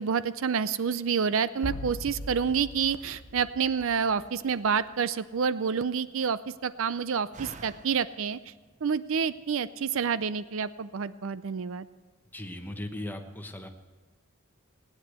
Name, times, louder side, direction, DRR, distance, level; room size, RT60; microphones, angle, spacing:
voice 1, 0.0-8.5 8.8-11.9, right 6 dB, 60° right, 16 dB, 0.5 m, -28 dB
sound 1, 1.6-4.5, left 1 dB, 70° left, 1.1 m, -40 dB
Slam, 2.4-9.5, right 3 dB, 35° right, 0.8 m, -54 dB
voice 2, 12.3-13.7, left 1 dB, 10° left, 4 dB, 1.2 m, -38 dB
18.5 x 9.7 x 8.1 m, 1.4 s
head